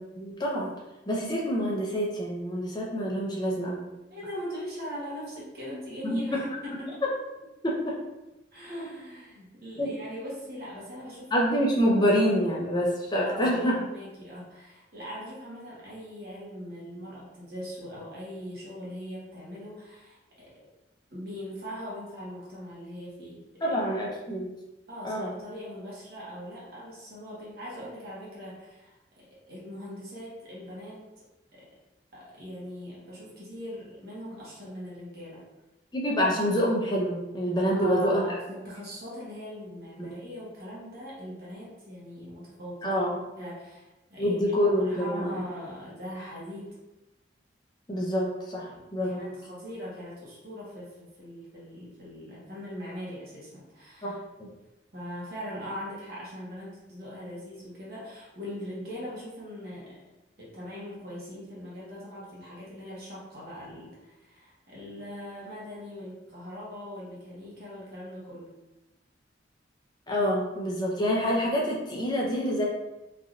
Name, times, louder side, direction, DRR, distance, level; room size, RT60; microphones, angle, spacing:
voice 1, 0.1-0.7 1.1-3.9 6.0-6.2 7.6-8.0 9.8-9.9 11.3-13.8 23.6-24.5 25.0-25.3 35.9-38.3 40.0-40.1 42.8-43.1 44.2-45.4 47.9-48.7 48.9-49.2 54.0-54.1 54.4-54.5 70.1-72.6, equal, 20° left, -3 dB, 0.5 m, -26 dB
voice 2, 4.1-7.1 8.5-11.3 11.8-11.9 13.2-20.5 21.1-23.8 24.9-31.2 31.5-31.7 32.1-35.4 37.7-43.0 43.4-46.8 48.6-54.2 54.9-60.0 60.4-68.5, equal, 55° right, -6 dB, 1.0 m, -41 dB
3.3 x 2.6 x 2.4 m, 0.99 s
head